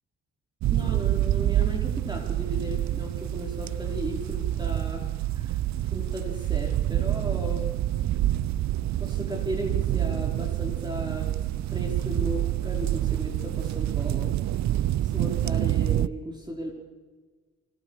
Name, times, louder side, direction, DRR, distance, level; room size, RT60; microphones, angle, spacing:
sound 1, 0.6-16.1, right 13 dB, 65° right, 0.6 m, -27 dB
voice 1, 0.7-5.6 5.8-7.7 9.0-14.3 15.0-16.7, equal, 15° right, 1 dB, 4.7 m, -36 dB
26.0 x 24.5 x 5.0 m, 1.4 s
cardioid pair, 90°, 30 cm